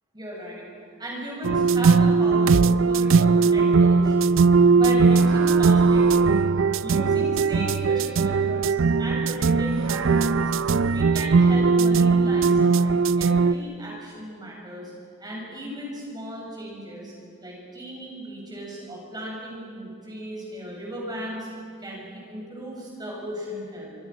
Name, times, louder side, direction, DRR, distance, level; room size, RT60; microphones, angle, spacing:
voice 1, 0.1-0.7 1.0-6.1 6.8-10.4 10.9-14.9 15.2-17.1 17.4-21.5 21.8-24.0, equal, 20° right, -3 dB, 7.5 m, -36 dB
sound 1, 1.4-13.5, right 4 dB, 65° right, 0.5 m, -19 dB
25.5 x 24.0 x 6.3 m, 2.3 s
head